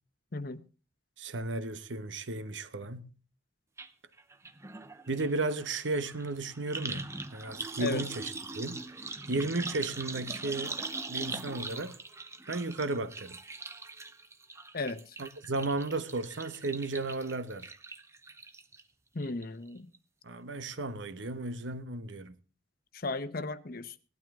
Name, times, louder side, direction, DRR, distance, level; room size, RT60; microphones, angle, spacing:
voice 1, 1.2-3.1 5.1-10.8 11.1-12.0 12.5-13.4 15.2-17.7 20.2-22.3, right 2 dB, 75° right, 1.0 m, -34 dB
sound 1, 3.8-3.9 4.2-18.8 19.2-19.7 19.9-20.0, right 3 dB, 15° right, 0.7 m, -41 dB
voice 2, 14.7-15.2 19.1-19.9 22.9-24.0, left 3 dB, 50° left, 0.9 m, -35 dB
17.5 x 12.0 x 3.6 m
head